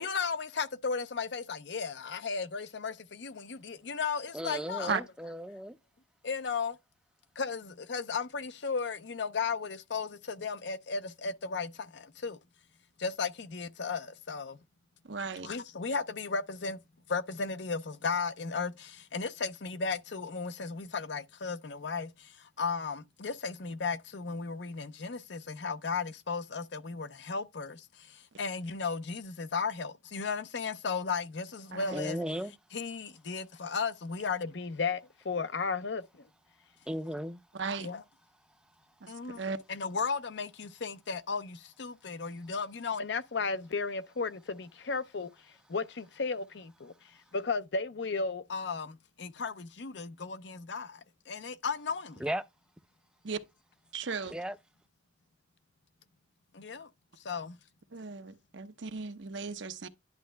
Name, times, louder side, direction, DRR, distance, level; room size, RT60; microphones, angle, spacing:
voice 1, 0.0-4.9 6.2-6.8 7.4-12.4 13.0-14.6 15.4-16.8 17.1-32.2 32.7-36.3 37.8-38.0 39.1-39.4 39.7-45.3 45.7-52.2 56.5-56.9 57.2-57.6, left 5 dB, 65° left, 0.6 m, -35 dB
voice 2, 4.3-5.8 31.9-32.5 36.9-37.4 52.2-52.4 54.3-54.6, equal, 5° right, 0.5 m, -35 dB
voice 3, 15.0-15.5 31.7-32.0 37.5-37.9 39.0-39.6 53.2-53.4 53.9-54.4 57.9-59.9, right 5 dB, 70° right, 0.8 m, -36 dB
10.5 x 6.2 x 2.2 m
head